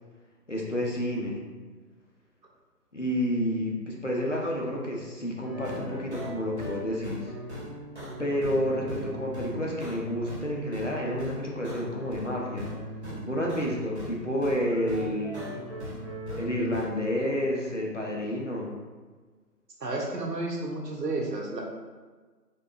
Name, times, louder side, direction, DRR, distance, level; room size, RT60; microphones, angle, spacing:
voice 1, 0.5-1.5 2.9-7.3 8.2-12.7 13.3-15.5 16.4-18.7, equal, 50° left, -2 dB, 0.5 m, -30 dB
sound 1, 5.4-10.5 10.7-14.1 14.4-16.8, equal, 40° right, 1.0 m, -39 dB
voice 2, 19.8-21.6, right 2 dB, 80° right, -1 dB, 0.9 m, -31 dB
3.7 x 2.8 x 2.4 m, 1.4 s
figure-of-eight pair, 175°, 49 cm